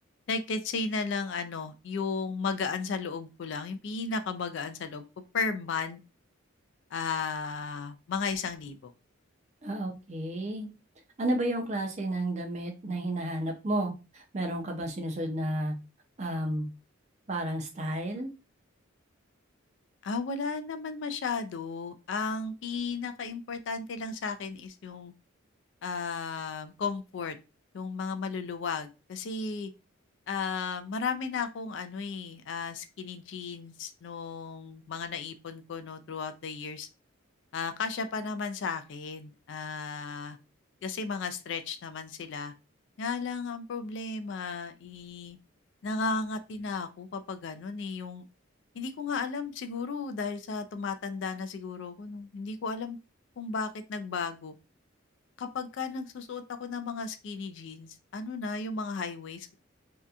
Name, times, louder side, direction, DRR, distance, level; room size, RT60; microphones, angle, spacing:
voice 1, 0.3-5.1 5.3-6.0 6.9-8.9 20.0-25.1 25.8-27.4 27.7-29.7 30.3-36.9 37.5-40.4 40.8-42.5 43.0-45.4 45.8-48.2 48.7-53.0 53.4-54.5 55.4-59.5, left 4 dB, 60° left, 9 dB, 0.3 m, -34 dB
voice 2, 9.6-10.7 11.2-15.7 16.2-16.7 17.3-18.3, right 1 dB, 35° right, 3 dB, 0.5 m, -32 dB
2.7 x 2.2 x 2.3 m, 0.29 s
head